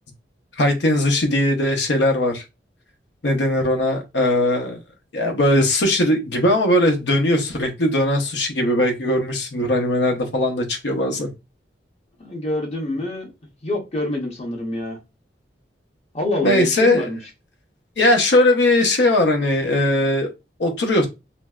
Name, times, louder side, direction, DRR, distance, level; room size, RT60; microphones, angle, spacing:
voice 1, 0.6-2.4 3.2-4.8 5.1-11.3 16.4-17.1 18.0-20.3 20.6-21.1, left 1 dB, 80° left, 0.7 m, -19 dB
voice 2, 12.2-13.3 13.6-15.0 16.1-17.2, left 2 dB, 35° left, 0.7 m, -26 dB
3.1 x 2.6 x 2.3 m
head